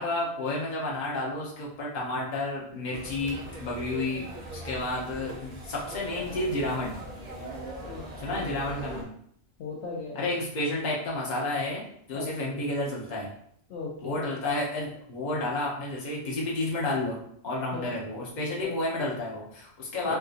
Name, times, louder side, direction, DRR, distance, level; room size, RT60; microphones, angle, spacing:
voice 1, 0.0-7.0 8.2-9.1 10.1-11.8 12.1-13.3 14.0-20.2, left 2 dB, 40° left, -4 dB, 0.9 m, -31 dB
sound 1, 2.9-9.0, right 1 dB, 40° right, 0.6 m, -40 dB
voice 2, 7.8-8.9 9.6-10.4 12.1-12.3 13.7-14.2 17.7-18.0 18.6-18.7 20.0-20.2, left 4 dB, 70° left, -2 dB, 0.8 m, -38 dB
3.4 x 2.6 x 2.4 m, 0.67 s
omnidirectional pair, 1.3 m